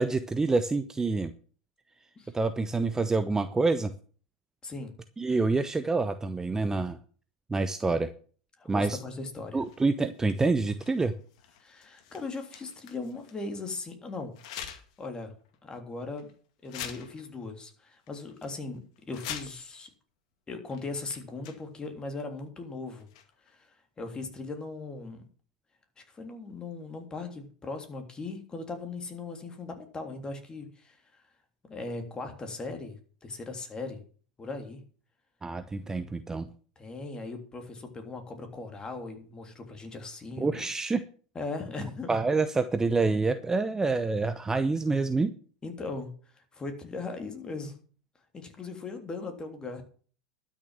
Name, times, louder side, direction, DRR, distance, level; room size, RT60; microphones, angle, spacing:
voice 1, 0.0-1.3 2.3-3.9 5.2-7.0 7.5-8.1 8.7-9.0 9.5-11.1 35.4-36.5 40.4-41.0 42.1-45.3, right 3 dB, 15° right, 11 dB, 0.8 m, -27 dB
voice 2, 4.6-4.9 8.6-9.6 11.6-14.4 15.0-15.3 15.6-16.3 16.6-19.9 20.5-23.1 23.5-25.2 26.0-31.2 31.7-34.0 34.4-34.8 36.8-40.6 41.3-42.2 45.6-47.8 48.3-49.8, left 3 dB, 20° left, 5 dB, 3.2 m, -39 dB
sound 1, 9.6-13.5 14.3-15.0 15.4-15.6 16.2-16.3 16.6-17.7 18.1-18.5 19.0-19.8 20.7-20.8 21.1-21.9 22.9-23.5, left 9 dB, 65° left, 2.1 m, -44 dB
12.0 x 6.6 x 7.7 m, 0.42 s
hypercardioid pair, 90°, 4 cm